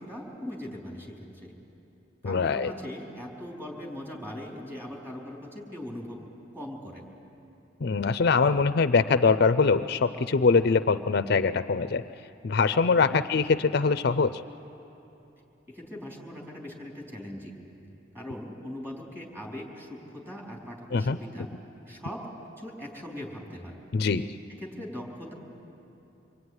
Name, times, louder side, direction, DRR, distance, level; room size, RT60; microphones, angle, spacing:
voice 1, 0.0-1.5 2.2-6.2 6.5-7.1 13.1-13.2 15.7-17.5 18.1-21.5 21.9-23.7 24.5-25.3, left 1 dB, 15° right, -2 dB, 4.5 m, -40 dB
voice 2, 2.2-2.7 7.8-12.0 12.4-14.4 20.9-21.2 23.9-24.3, left 4 dB, 55° left, 12 dB, 0.5 m, -23 dB
26.0 x 23.5 x 9.7 m, 2.9 s
head